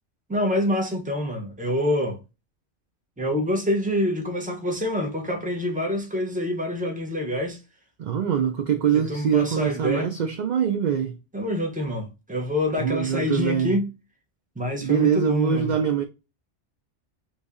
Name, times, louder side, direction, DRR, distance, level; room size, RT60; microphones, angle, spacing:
voice 1, 0.3-2.2 3.2-7.6 8.9-10.1 11.3-13.8 14.6-15.7, left 1 dB, 10° right, 0.7 m, -26 dB
voice 2, 8.0-11.2 12.8-13.8 14.8-16.0, right 8 dB, 60° right, 0.4 m, -23 dB
3.1 x 2.7 x 3.5 m
omnidirectional pair, 1.2 m